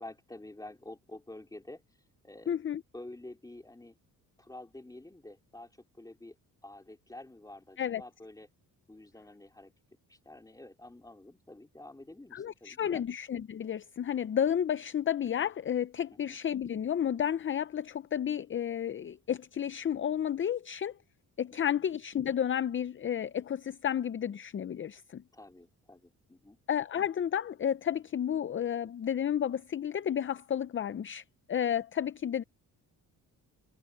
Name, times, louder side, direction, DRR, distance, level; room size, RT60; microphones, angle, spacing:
voice 1, 0.0-1.8 2.2-2.6 2.9-3.9 4.4-5.7 6.0-6.4 6.6-8.5 8.9-9.7 10.1-13.1 16.1-16.4 21.5-21.8 25.3-26.6, left 1 dB, 10° left, 2.8 m, -49 dB
voice 2, 2.5-2.8 7.8-8.0 12.3-21.0 21.4-25.2 26.7-32.4, left 9 dB, 35° left, 0.5 m, -32 dB
cardioid pair, 105°, 37 cm